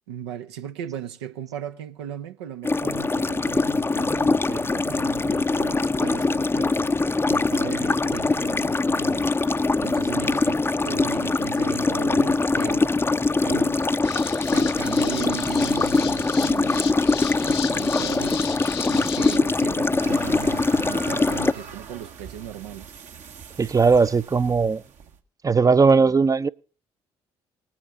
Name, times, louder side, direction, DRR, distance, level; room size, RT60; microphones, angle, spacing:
voice 1, 0.1-6.9 7.3-13.0 13.4-13.9 14.5-17.0 17.4-18.5 18.9-22.9, right 9 dB, 85° right, 0.7 m, -37 dB
sound 1, 2.6-21.5, left 3 dB, 15° left, 0.6 m, -23 dB
sound 2, 14.0-19.4, left 9 dB, 85° left, 0.6 m, -35 dB
sound 3, 20.0-25.2, right 8 dB, 60° right, 1.1 m, -42 dB
voice 2, 23.6-24.8 25.4-26.5, right 4 dB, 25° right, 0.5 m, -18 dB
20.0 x 8.8 x 3.6 m
hypercardioid pair, 45°, 14 cm